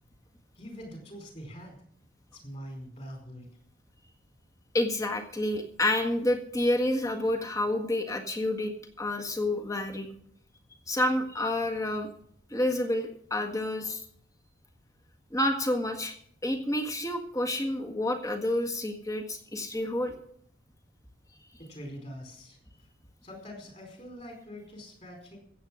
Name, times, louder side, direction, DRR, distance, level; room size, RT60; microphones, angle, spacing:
voice 1, 0.6-1.8 2.3-3.5 21.7-22.6 23.2-25.4, equal, 35° left, 2 dB, 4.7 m, -44 dB
voice 2, 4.7-10.1 10.9-12.1 12.5-14.0 15.3-16.1 16.4-20.1, left 1 dB, 15° left, 3 dB, 1.7 m, -29 dB
15.0 x 8.2 x 6.4 m, 0.63 s
head